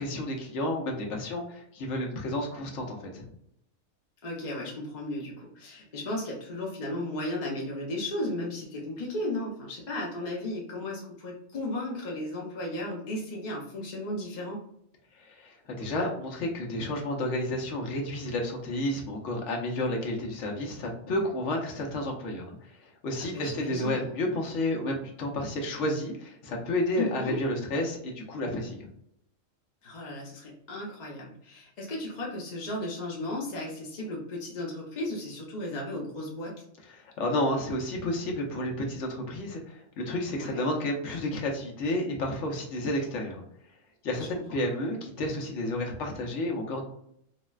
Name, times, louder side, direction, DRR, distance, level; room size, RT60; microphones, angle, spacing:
voice 1, 0.0-3.3 15.2-28.9 36.9-43.4 44.0-46.8, left 1 dB, 65° left, 1 dB, 1.0 m, -31 dB
voice 2, 4.2-14.6 23.2-24.1 27.0-27.4 29.8-36.5 40.3-40.6 44.2-44.3, left 1 dB, 45° left, -3 dB, 0.6 m, -35 dB
4.0 x 2.1 x 2.3 m, 0.73 s
omnidirectional pair, 1.4 m